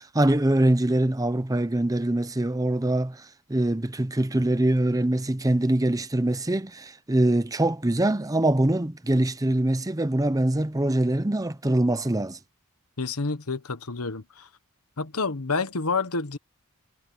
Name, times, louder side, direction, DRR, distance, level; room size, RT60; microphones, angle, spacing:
voice 1, 0.0-3.2 3.5-12.4, right 1 dB, 15° right, 0.8 m, -23 dB
voice 2, 13.0-14.5 15.0-16.4, left 4 dB, 85° left, 1.3 m, -29 dB
head